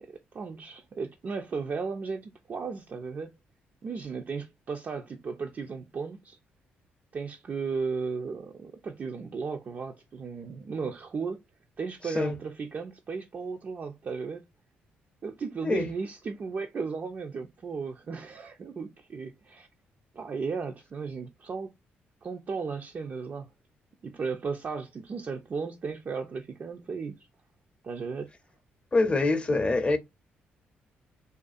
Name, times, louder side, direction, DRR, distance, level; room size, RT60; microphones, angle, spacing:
voice 1, 0.0-3.3 3.8-6.4 7.1-11.4 11.8-14.4 15.2-19.7 20.1-21.7 22.2-23.5 24.0-27.3 27.8-28.3, right 5 dB, 45° right, 0.4 m, -35 dB
voice 2, 28.9-30.0, left 2 dB, 25° left, 0.6 m, -25 dB
2.5 x 2.3 x 2.4 m
supercardioid pair, 65°, 4 cm